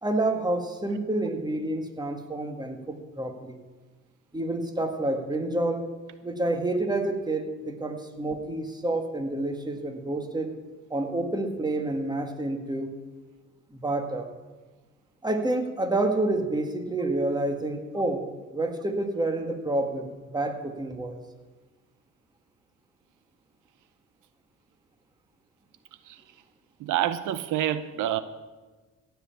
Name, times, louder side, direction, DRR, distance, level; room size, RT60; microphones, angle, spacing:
voice 1, 0.0-3.6 4.3-5.8 6.2-10.5 10.9-12.9 13.7-14.3 15.2-18.2 18.5-21.2, right 2 dB, 15° right, 1.8 m, -28 dB
voice 2, 26.8-28.2, right 12 dB, 85° right, 0.7 m, -27 dB
16.0 x 5.9 x 8.6 m
cardioid pair, 90°, 30 cm